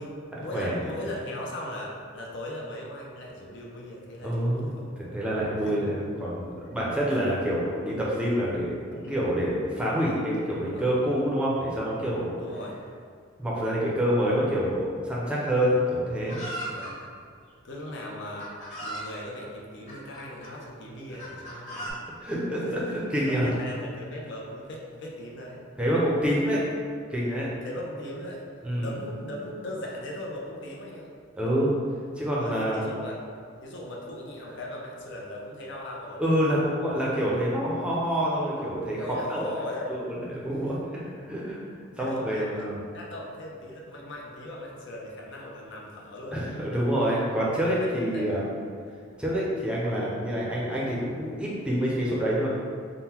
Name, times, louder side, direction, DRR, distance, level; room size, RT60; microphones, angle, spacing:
voice 1, 0.0-4.9 5.6-5.9 7.1-7.2 8.9-9.2 10.7-10.9 12.4-12.8 15.6-15.8 16.7-17.1 17.6-18.5 18.8-22.1 22.7-25.6 27.6-28.4 28.8-31.1 32.4-33.2 33.6-36.3 39.0-40.0 40.7-40.8 41.9-42.7 42.9-46.4 47.8-48.3, left 1 dB, 60° left, -2 dB, 0.6 m, -38 dB
voice 2, 4.2-4.7 5.0-12.4 13.4-16.4 22.2-23.5 25.8-26.6 27.1-27.5 28.6-28.9 31.4-31.7 32.2-32.9 36.2-39.0 39.3-39.5 39.9-40.0 40.3-41.6 42.0-42.8 46.3-48.5 49.2-52.5, equal, 5° right, -6 dB, 0.5 m, -27 dB
Chicken rooster, 16.3-16.9 17.9-18.0 18.4-19.1 19.9-20.5 21.2-21.9, right 1 dB, 35° left, 1.3 m, -37 dB
3.7 x 2.1 x 4.3 m, 2.2 s
head